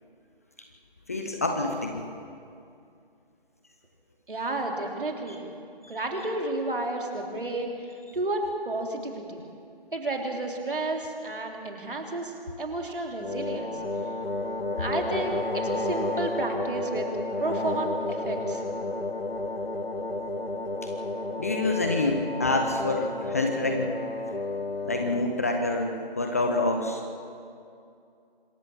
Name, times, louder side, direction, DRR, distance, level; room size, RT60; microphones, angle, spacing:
voice 1, 1.1-2.0 5.8-6.0 21.4-24.0 24.8-27.2, left 2 dB, 15° left, 3 dB, 0.7 m, -27 dB
voice 2, 4.3-5.4 5.9-7.7 8.1-9.4 9.9-13.8 14.8-17.1 17.4-18.6, right 2 dB, 60° right, 2 dB, 3.6 m, -31 dB
sound 1, 13.2-25.4, left 2 dB, 80° left, 1.3 m, -31 dB
26.0 x 13.5 x 7.4 m, 2.5 s
figure-of-eight pair, 155°, 29 cm